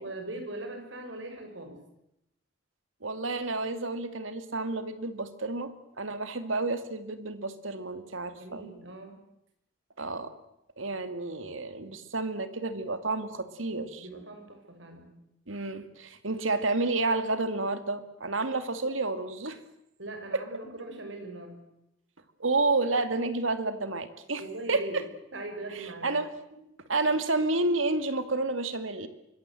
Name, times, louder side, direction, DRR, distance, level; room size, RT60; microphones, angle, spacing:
voice 1, 0.0-1.8 8.4-9.2 14.0-15.1 20.0-21.5 24.4-25.0 25.3-26.1, right 2 dB, 70° right, 5 dB, 6.6 m, -40 dB
voice 2, 3.0-5.7 6.0-8.7 10.0-10.3 10.8-14.1 15.5-19.6 22.4-24.4 24.7-24.8 25.7-26.3 26.9-29.1, right 3 dB, 85° right, 10 dB, 2.5 m, -30 dB
25.0 x 22.0 x 7.8 m, 0.84 s
head